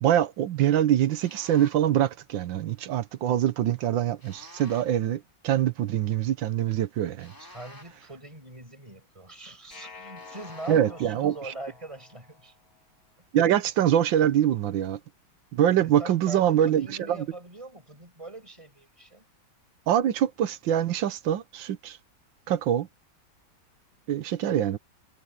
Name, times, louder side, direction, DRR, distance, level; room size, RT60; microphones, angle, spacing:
voice 1, 0.0-7.3 10.7-11.5 13.3-15.0 15.5-17.2 19.9-22.0 22.5-22.9 24.1-24.8, right 11 dB, 70° right, 1.5 m, -24 dB
sound 1, 1.2-1.9 4.2-5.1 7.2-8.2 10.2-11.0, left 1 dB, 10° left, 2.8 m, -50 dB
voice 2, 7.4-12.5 15.8-19.3, right 2 dB, 15° right, 5.9 m, -42 dB
sound 2, 9.7-12.8, left 4 dB, 85° left, 4.0 m, -48 dB
omnidirectional pair, 2.2 m